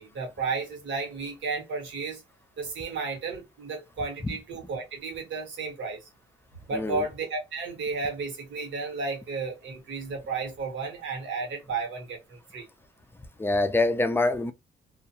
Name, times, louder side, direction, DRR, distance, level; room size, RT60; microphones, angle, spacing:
voice 1, 0.0-2.2 2.6-6.0 6.7-12.7, right 4 dB, 75° right, 1.2 m, -33 dB
voice 2, 6.7-7.1 13.4-14.5, left 2 dB, 10° left, 0.4 m, -25 dB
2.4 x 2.2 x 2.7 m
cardioid pair, 115°, 19 cm